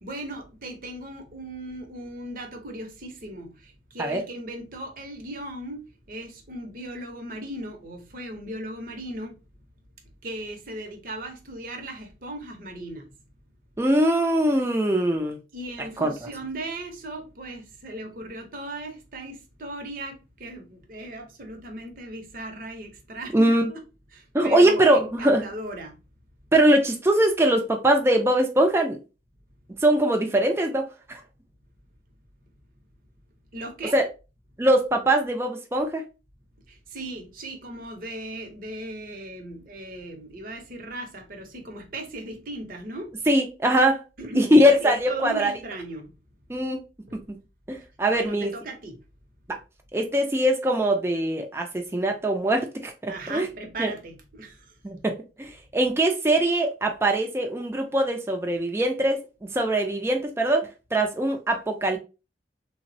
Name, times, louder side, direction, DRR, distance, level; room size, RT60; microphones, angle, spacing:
voice 1, 0.0-9.4 10.2-13.1 15.5-23.8 24.1-26.0 33.5-34.0 36.7-43.1 44.2-46.1 47.1-47.2 48.0-49.0 53.1-54.8, right 1 dB, 50° right, 0.7 m, -37 dB
voice 2, 13.8-15.4 16.0-16.1 23.3-23.7 24.3-25.4 26.5-29.0 29.8-31.2 33.9-34.1 34.6-36.0 43.3-44.0 44.3-45.5 46.5-46.8 47.1-47.4 47.7-48.5 49.9-53.5 53.8-53.9 54.8-62.0, right 1 dB, 15° right, 0.4 m, -22 dB
3.3 x 2.0 x 2.6 m
head